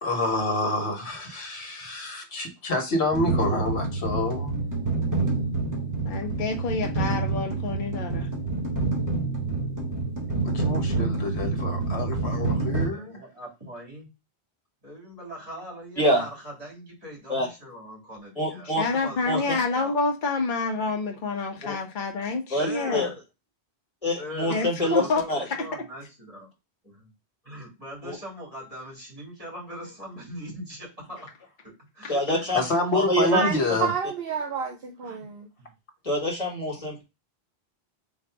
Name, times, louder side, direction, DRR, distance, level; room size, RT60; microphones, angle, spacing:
voice 1, 0.0-4.5 10.4-13.2 32.5-33.9, left 2 dB, 90° left, 1.4 m, -27 dB
sound 1, 3.1-12.9, right 3 dB, 20° right, 1.1 m, -27 dB
voice 2, 6.0-8.3 18.7-22.4 22.7-23.1 24.5-25.2, left 3 dB, 50° left, 1.0 m, -28 dB
voice 3, 12.9-14.1 14.8-19.9 22.6-23.2 24.2-26.5 26.8-27.1 27.4-31.2 31.6-32.5 35.0-35.2 35.6-35.7, equal, 35° right, 2.3 m, -41 dB
voice 4, 18.4-18.8 19.3-19.6 21.6-21.8 22.5-22.7 22.9-23.1 24.0-25.5 28.0-28.2 32.1-32.6 32.9-33.4 36.0-37.0, left 1 dB, 35° left, 1.4 m, -25 dB
voice 5, 33.3-35.5, right 6 dB, 65° right, 0.9 m, -29 dB
3.7 x 2.6 x 4.5 m
omnidirectional pair, 1.1 m